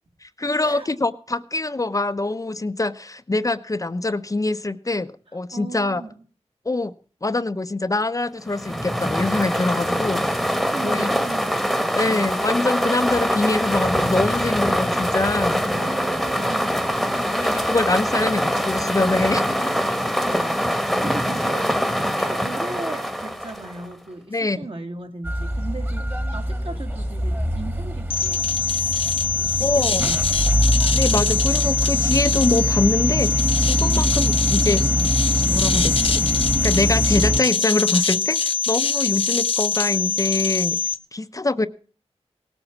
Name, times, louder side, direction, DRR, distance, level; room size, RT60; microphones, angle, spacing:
voice 1, 0.2-6.0 6.6-6.9 7.2-10.3 10.8-11.1 11.9-15.7 17.3-19.7 24.3-24.6 29.6-30.0 30.9-34.9 35.4-36.2 36.6-40.8 41.1-41.7, left 2 dB, 30° left, 0.8 m, -24 dB
voice 2, 5.5-6.1 10.6-12.3 15.7-16.8 20.0-28.5 29.3-30.5 33.9-34.3, right 3 dB, 55° right, 2.4 m, -37 dB
sound 1, 8.5-23.9, equal, ahead, 1.3 m, -23 dB
sound 2, 25.2-37.4, equal, 20° right, 1.7 m, -23 dB
sound 3, 28.1-41.0, left 6 dB, 60° left, 1.2 m, -23 dB
18.5 x 8.0 x 7.2 m
wide cardioid pair, 90°, 11 cm